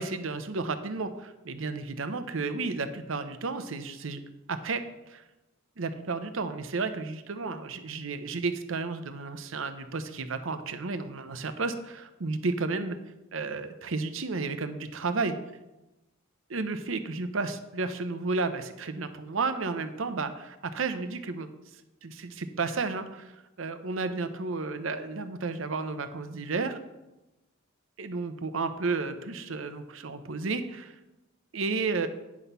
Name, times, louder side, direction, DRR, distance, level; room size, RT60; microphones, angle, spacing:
voice 1, 0.0-4.2 4.5-5.2 5.8-13.0 13.3-15.4 16.5-21.5 22.0-26.8 28.0-31.0 31.5-32.1, right 3 dB, 70° right, 10 dB, 0.8 m, -32 dB
9.7 x 6.0 x 5.5 m, 0.99 s
head